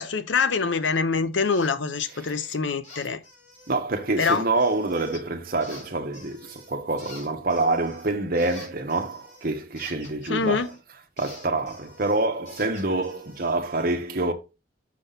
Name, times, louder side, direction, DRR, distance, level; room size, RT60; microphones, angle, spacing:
voice 1, 0.0-3.2 4.2-4.4 10.3-10.7, left 5 dB, 85° left, 0.8 m, -25 dB
sound 1, 1.5-1.7 2.0-2.5 2.8-3.8 4.2-5.2 5.6-6.7 7.0-10.8 11.2-13.6, left 2 dB, 40° left, 3.0 m, -48 dB
voice 2, 2.1-2.4 3.7-14.3, right 2 dB, 50° right, 1.1 m, -27 dB
6.2 x 5.9 x 3.9 m
head